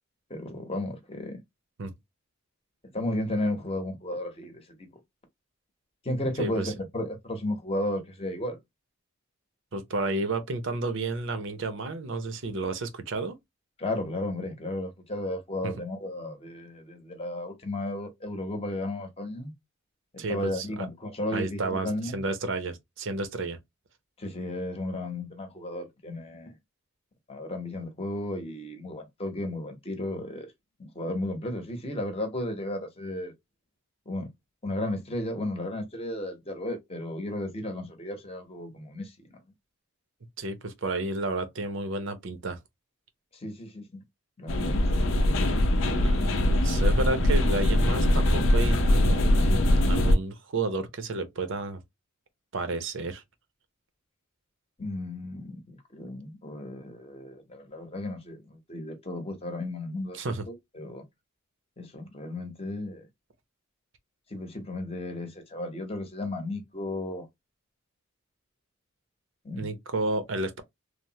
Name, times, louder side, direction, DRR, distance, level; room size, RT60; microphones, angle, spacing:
voice 1, 0.3-1.4 2.9-4.9 6.0-8.6 13.8-19.5 20.1-22.2 24.2-26.6 27.3-30.5 30.8-33.3 34.1-34.3 34.6-39.1 43.3-44.0 44.4-45.1 54.8-60.2 60.5-61.0 61.8-63.1 64.3-67.3 69.4-69.7, left 1 dB, 30° left, 0.8 m, -34 dB
voice 2, 6.4-6.7 9.7-13.4 15.6-15.7 20.2-20.9 21.3-23.6 40.4-42.6 45.9-49.3 49.9-51.8 52.5-53.2 60.1-60.5 69.6-70.6, right 2 dB, 65° right, 0.6 m, -31 dB
sound 1, 44.5-50.2, left 1 dB, 65° left, 0.6 m, -22 dB
3.2 x 2.0 x 2.7 m
head